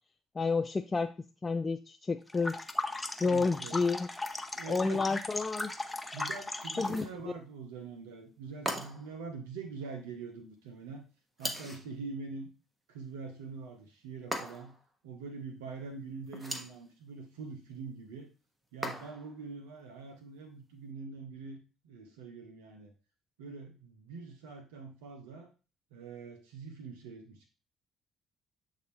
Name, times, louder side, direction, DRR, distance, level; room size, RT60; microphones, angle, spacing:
voice 1, 0.3-1.1 1.4-2.6 3.2-4.1 4.7-5.7 6.8-7.0, left 4 dB, 30° left, 7 dB, 0.4 m, -30 dB
sound 1, 2.3-7.1, left 2 dB, 10° left, 0.8 m, -37 dB
voice 2, 3.2-3.8 4.5-5.2 6.1-11.0 11.4-12.5 12.9-14.7 15.0-18.3 18.7-21.6 21.8-22.9 23.4-25.5 25.9-27.5, right 4 dB, 75° right, 4 dB, 0.8 m, -44 dB
sound 2, 6.8-7.2 8.7-9.2 11.4-11.9 14.3-14.8 16.3-16.8 18.8-19.4, equal, 15° right, 1.4 m, -38 dB
7.8 x 3.7 x 3.3 m, 0.33 s
figure-of-eight pair, 50°, 0 cm